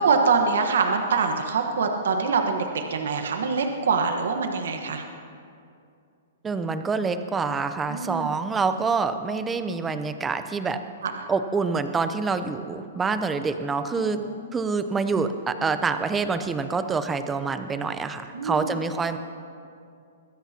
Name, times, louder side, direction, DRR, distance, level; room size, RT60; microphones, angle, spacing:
voice 1, 0.0-5.0 7.9-8.3 11.0-11.1 14.0-14.3 18.3-18.7, right 5 dB, 80° right, 4 dB, 1.3 m, -24 dB
voice 2, 6.4-10.8 11.3-14.2 14.5-19.2, right 4 dB, 15° right, 10 dB, 0.7 m, -26 dB
22.0 x 16.0 x 2.9 m, 2.4 s
hypercardioid pair, 145°, 0 cm